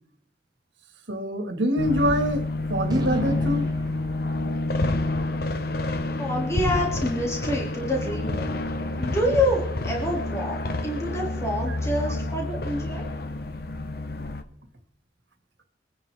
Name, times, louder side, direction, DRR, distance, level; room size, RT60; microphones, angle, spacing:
voice 1, 1.1-3.7 11.7-11.8, equal, 85° right, 2.2 m, -25 dB
sound 1, 1.8-14.4, left 2 dB, 55° left, 1.1 m, -28 dB
Gunshot gunfire, 1.8-8.4, right 1 dB, 20° right, 1.4 m, -39 dB
voice 2, 6.2-8.6 9.0-10.6 10.8-13.1, left 1 dB, 15° left, 2.8 m, -27 dB
23.5 x 9.9 x 3.6 m
head